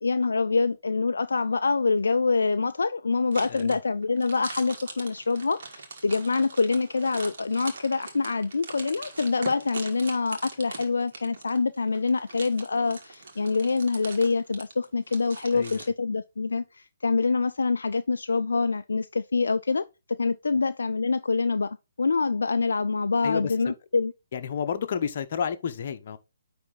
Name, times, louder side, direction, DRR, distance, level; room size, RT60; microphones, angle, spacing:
voice 1, 0.0-24.1, left 4 dB, 75° left, 0.4 m, -26 dB
sound 1, 3.3-15.9, right 4 dB, 55° right, 1.9 m, -42 dB
voice 2, 15.5-15.8 23.2-23.7 24.3-26.2, left 7 dB, 50° left, 0.9 m, -31 dB
9.6 x 3.4 x 4.0 m
figure-of-eight pair, 135°, 0 cm